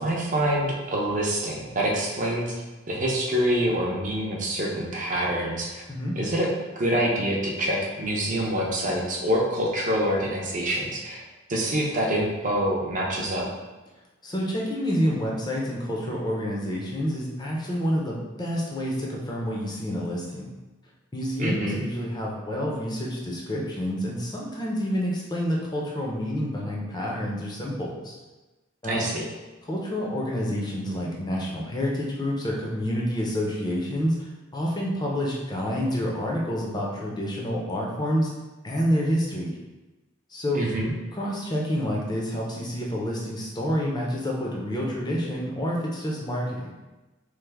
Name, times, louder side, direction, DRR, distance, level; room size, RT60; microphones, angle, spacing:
voice 1, 0.0-2.6 2.9-5.8 6.2-6.5 6.8-11.2 11.5-13.5 21.4-21.8 28.8-29.3 40.5-40.9, right 1 dB, 40° right, -2 dB, 0.5 m, -26 dB
voice 2, 14.2-20.5 21.1-28.2 28.8-29.0 29.6-34.3 34.5-38.3 38.6-39.6 40.3-40.6 41.1-46.7, equal, 20° left, -3 dB, 0.5 m, -28 dB
3.2 x 2.1 x 3.3 m, 1.1 s
head